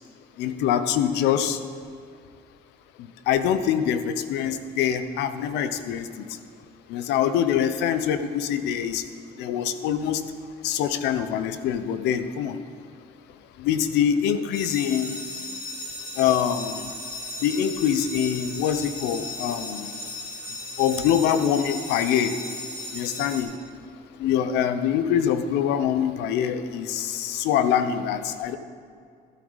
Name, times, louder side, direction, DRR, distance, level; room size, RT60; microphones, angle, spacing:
voice 1, 0.4-1.6 3.3-6.0 6.9-9.0 9.4-10.2 10.6-12.6 13.6-15.2 16.2-16.8 17.4-19.9 20.8-22.3 22.9-23.5 24.2-28.6, left 9 dB, 90° left, 11 dB, 0.8 m, -24 dB
sound 1, 14.5-23.4, left 1 dB, 50° left, 3.6 m, -36 dB
12.5 x 12.5 x 4.0 m, 2.2 s
cardioid pair, 110°, 17 cm